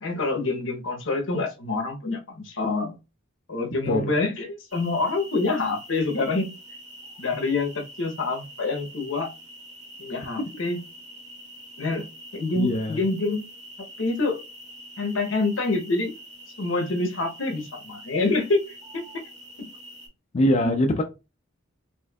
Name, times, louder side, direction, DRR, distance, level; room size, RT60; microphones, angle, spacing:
voice 1, 0.0-3.0 3.5-6.5 7.2-9.3 10.0-10.8 11.8-12.0 12.3-13.5 13.8-14.4 15.0-16.1 16.6-18.6 18.9-19.0 19.6-19.7 20.6-20.7, left 3 dB, 70° left, 0.9 m, -26 dB
voice 2, 3.8-4.2 10.4-10.5 12.6-13.0 20.3-21.0, left 1 dB, 35° left, 0.3 m, -23 dB
sound 1, 4.7-20.1, right 1 dB, 35° right, 1.4 m, -45 dB
4.2 x 2.6 x 2.3 m
head